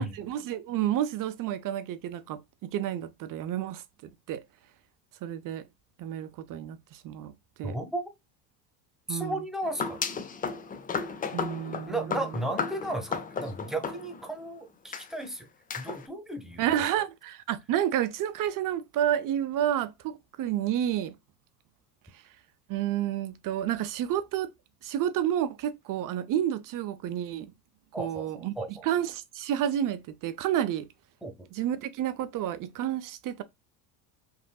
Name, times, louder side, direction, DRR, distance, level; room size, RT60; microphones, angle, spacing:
voice 1, 0.0-3.8 4.3-4.4 5.2-5.7 6.0-7.3 7.6-7.8 9.1-9.4 11.3-12.2 16.6-21.1 22.7-24.5 24.8-27.5 28.0-28.5 28.8-30.9 31.5-33.4, right 11 dB, 45° right, 0.6 m, -30 dB
voice 2, 7.6-8.1 9.1-10.0 11.9-15.5 15.8-16.8 27.9-28.9 31.2-31.5, right 1 dB, ahead, 0.9 m, -34 dB
sound 1, 9.6-14.4 14.9-15.1 15.7-16.0, left 5 dB, 20° left, 0.4 m, -34 dB
5.4 x 2.5 x 2.2 m
supercardioid pair, 95°, 48 cm